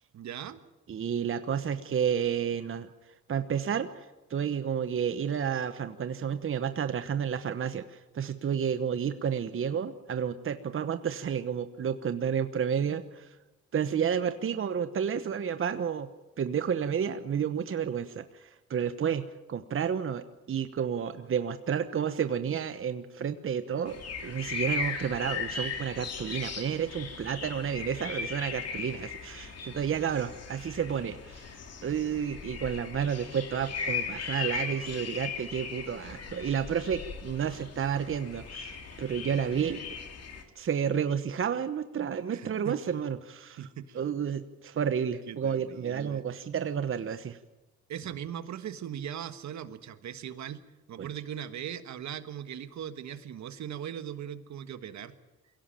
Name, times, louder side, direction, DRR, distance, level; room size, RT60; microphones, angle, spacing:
voice 1, 0.1-0.6 27.6-28.0 34.3-35.1 42.3-42.8 43.6-44.0 45.3-46.2 47.9-50.6 50.9-55.1, right 9 dB, 65° right, 11 dB, 1.5 m, -40 dB
voice 2, 0.9-2.9 3.3-4.0 4.3-13.3 13.7-16.1 16.4-19.2 19.5-31.5 31.8-39.8 40.6-43.6 43.9-47.4 51.0-51.1, right 7 dB, 45° right, 10 dB, 1.1 m, -31 dB
sound 1, 23.9-40.4, left 5 dB, 55° left, 3.2 m, -38 dB
22.5 x 17.0 x 9.0 m, 1.1 s
cardioid pair, 90°, 30 cm